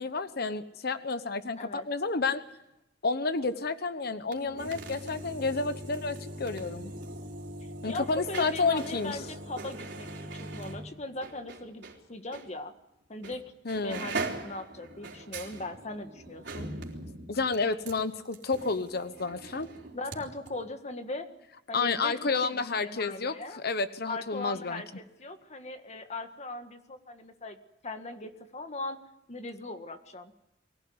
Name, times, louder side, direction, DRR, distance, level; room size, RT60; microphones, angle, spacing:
voice 1, 0.0-2.4 3.0-6.9 7.8-9.2 13.6-14.1 17.3-19.7 21.7-24.8, left 4 dB, 55° left, 11 dB, 1.0 m, -30 dB
voice 2, 1.6-1.9 7.9-11.8 12.1-12.7 13.1-13.4 13.8-16.7 19.9-21.3 21.7-22.2 22.4-23.6 24.1-27.6 27.8-29.0 29.3-30.3, left 2 dB, 40° left, 7 dB, 1.7 m, -39 dB
sound 1, 4.2-12.0 12.3-12.5 13.2-13.4 13.7-20.2 20.4-20.5, right 2 dB, 65° right, 4.1 m, -41 dB
23.5 x 16.5 x 9.6 m, 0.88 s
head